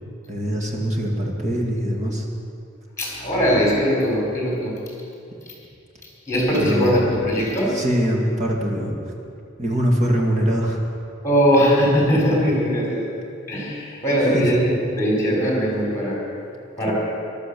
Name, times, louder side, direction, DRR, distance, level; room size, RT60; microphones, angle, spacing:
voice 1, 0.3-2.2 6.6-7.1 7.7-9.0 9.6-10.8 14.2-14.5, equal, 35° right, 0 dB, 2.1 m, -23 dB
voice 2, 3.0-4.7 6.3-7.7 11.2-13.1 13.5-16.2 16.8-16.9, equal, 15° left, -3 dB, 4.4 m, -20 dB
14.5 x 12.0 x 6.9 m, 2.6 s
head